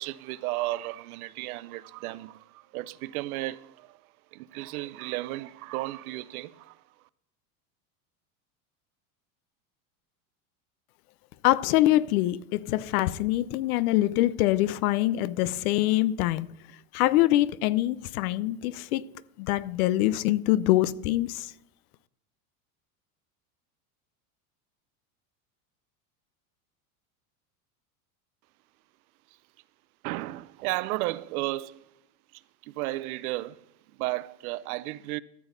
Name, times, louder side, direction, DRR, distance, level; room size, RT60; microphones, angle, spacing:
voice 1, 0.0-3.9 4.3-6.7 30.0-31.8 32.7-33.6 34.0-35.2, right 18 dB, 80° right, 0.6 m, -33 dB
voice 2, 11.4-16.5 16.9-19.0 19.4-21.5, left 15 dB, 80° left, 0.7 m, -24 dB
13.5 x 7.1 x 3.9 m
supercardioid pair, 135°, 43 cm